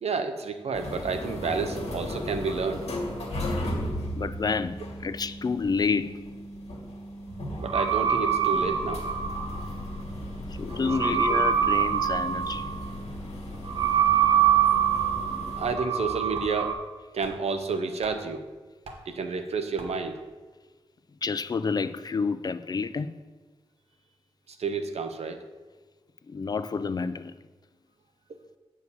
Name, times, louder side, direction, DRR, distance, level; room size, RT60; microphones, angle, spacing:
voice 1, 0.0-2.8 7.6-9.0 11.1-11.2 15.6-16.8 17.1-18.5 19.1-20.2 24.6-25.4, right 4 dB, 85° right, 0.7 m, -30 dB
sound 1, 0.7-15.8, left 1 dB, 85° left, 1.7 m, -36 dB
voice 2, 4.2-6.3 10.6-12.7 21.2-23.1 26.3-27.4, left 4 dB, 40° left, 0.3 m, -29 dB
sound 2, 7.3-16.7, right 8 dB, 55° right, 1.6 m, -25 dB
sound 3, 14.7-14.8 16.0-16.1 16.3-16.9 17.2-18.4 18.8-19.2 19.8-20.2, right 2 dB, 70° right, 1.2 m, -44 dB
8.0 x 4.9 x 6.9 m
wide cardioid pair, 120°, 11 cm